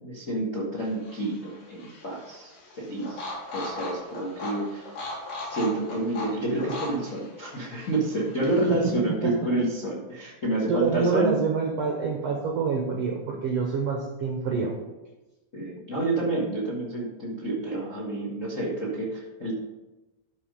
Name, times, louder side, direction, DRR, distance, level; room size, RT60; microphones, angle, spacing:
voice 1, 0.0-4.9 5.5-11.4 15.5-19.5, right 2 dB, 50° left, -4 dB, 0.9 m, -29 dB
sound 1, 0.8-8.9, left 2 dB, 75° left, 4.4 m, -39 dB
voice 2, 10.7-14.8, right 5 dB, 70° right, 1 dB, 1.5 m, -27 dB
12.5 x 4.2 x 5.2 m, 1.1 s
omnidirectional pair, 4.1 m